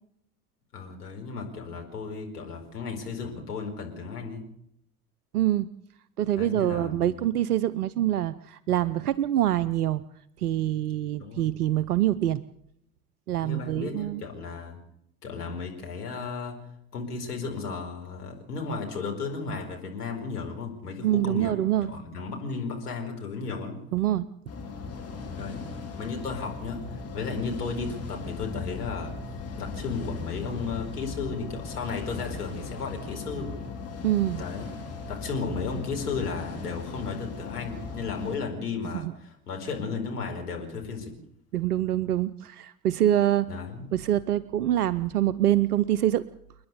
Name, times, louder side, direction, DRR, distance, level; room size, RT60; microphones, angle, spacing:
voice 1, 0.7-4.4 6.3-7.3 11.2-11.5 13.4-14.8 15.2-16.6 16.9-23.8 25.4-25.7 26.0-33.6 34.3-34.7 35.1-41.1 43.5-43.9, left 4 dB, 80° left, 2 dB, 4.9 m, -34 dB
voice 2, 5.3-5.7 6.2-10.0 10.4-12.4 13.3-14.2 21.0-21.9 23.9-24.3 34.0-34.4 38.9-39.1 41.5-43.5 43.9-46.2, right 12 dB, 80° right, 17 dB, 0.7 m, -25 dB
sound 1, 24.5-38.4, left 4 dB, 30° left, 5.5 m, -38 dB
29.5 x 10.5 x 8.3 m, 0.74 s
figure-of-eight pair, 65°, 46 cm